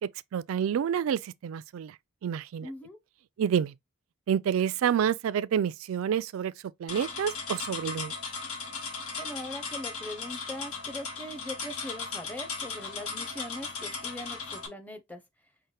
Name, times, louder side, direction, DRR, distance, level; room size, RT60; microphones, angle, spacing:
voice 1, 0.0-2.0 2.2-2.7 3.4-3.7 4.3-6.5 6.8-8.1, right 8 dB, 75° right, 0.3 m, -28 dB
voice 2, 2.6-3.0 9.2-15.2, left 1 dB, 5° left, 0.6 m, -41 dB
sound 1, 6.9-14.7, left 4 dB, 85° left, 1.2 m, -37 dB
5.5 x 2.1 x 3.1 m
head